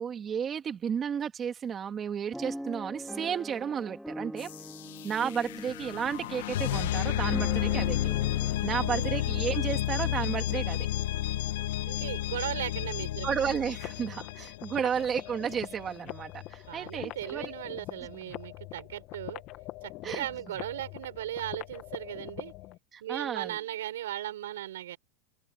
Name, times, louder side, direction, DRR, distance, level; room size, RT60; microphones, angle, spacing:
voice 1, 0.0-4.5 5.0-8.1 8.6-10.9 13.2-17.5 20.0-20.3 22.9-23.6, right 7 dB, 20° right, 2.0 m, -33 dB
sound 1, 2.3-10.4 11.0-11.1 11.4-11.7, equal, ahead, 3.5 m, -43 dB
sound 2, 4.4-15.2, left 13 dB, 75° left, 1.1 m, -31 dB
voice 2, 8.6-9.1 11.9-13.3 16.7-19.4 19.8-22.5 23.0-25.0, right 13 dB, 85° right, 5.2 m, -37 dB
sound 3, 13.8-22.8, left 17 dB, 40° left, 1.5 m, -43 dB
supercardioid pair, 150°, 0 cm